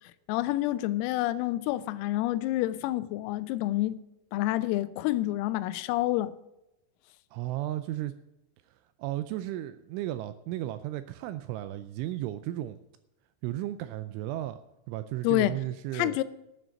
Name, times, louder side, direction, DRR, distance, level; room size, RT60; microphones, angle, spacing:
voice 1, 0.3-4.0 4.3-6.3 15.2-15.6 15.9-16.2, left 16 dB, 85° left, 3.4 m, -28 dB
voice 2, 7.3-8.1 9.0-12.8 13.4-14.6 14.9-16.2, right 14 dB, 85° right, 2.8 m, -34 dB
12.5 x 7.7 x 7.0 m
omnidirectional pair, 6.0 m